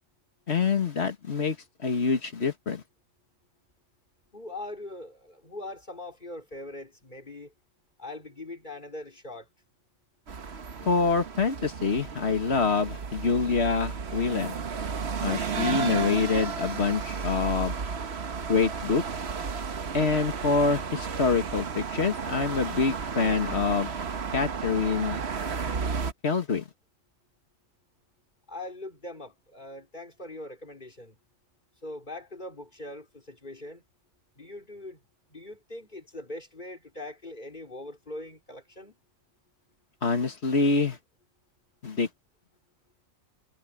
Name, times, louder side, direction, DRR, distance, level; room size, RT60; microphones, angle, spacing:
voice 1, 0.5-2.8 10.8-14.6 15.2-17.8 18.5-19.0 19.9-23.9 24.3-25.2 26.2-26.6 40.0-41.0 41.8-42.1, left 4 dB, 55° left, 2.0 m, -26 dB
voice 2, 4.3-7.5 8.0-9.5 28.5-31.2 31.8-33.8 34.3-35.0 35.3-39.0, left 2 dB, 35° left, 4.6 m, -41 dB
sound 1, 10.3-26.1, right 5 dB, 55° right, 1.4 m, -33 dB
omnidirectional pair, 1.4 m